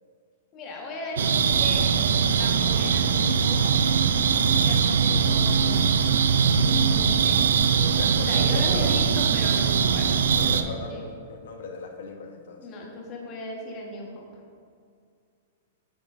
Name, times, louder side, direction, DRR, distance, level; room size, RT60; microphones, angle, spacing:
voice 1, 0.5-2.0 2.3-3.6 4.5-6.0 6.4-7.4 8.3-11.0 12.6-14.2, left 2 dB, 30° left, 0 dB, 1.3 m, -37 dB
sound 1, 1.2-10.6, right 6 dB, 85° right, 0.4 m, -21 dB
voice 2, 7.7-9.1 9.4-9.6 10.4-12.6, left 4 dB, 70° left, 3 dB, 1.0 m, -37 dB
9.2 x 6.1 x 2.6 m, 2.2 s
hypercardioid pair, 145°, 0 cm